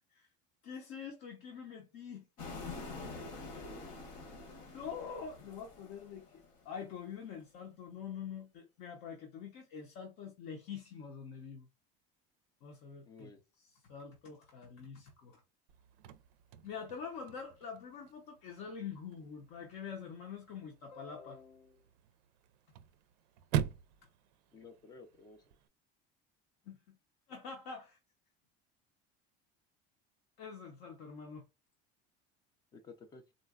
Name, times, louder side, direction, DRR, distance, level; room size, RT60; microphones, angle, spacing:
voice 1, 0.6-2.3 4.6-6.2 6.6-11.7 12.6-13.3 13.9-15.4 16.6-21.8 26.7-27.0 27.3-28.0 30.4-31.4, left 6 dB, 55° left, 0.7 m, -45 dB
sound 1, 2.4-6.7, left 3 dB, 70° left, 1.3 m, -46 dB
voice 2, 13.0-13.4 24.5-25.4 32.7-33.2, left 4 dB, 20° left, 0.4 m, -53 dB
Chirp tweet / Car / Slam, 15.7-25.7, right 10 dB, 90° right, 0.4 m, -43 dB
3.8 x 2.1 x 2.3 m
cardioid pair, 170°, 21 cm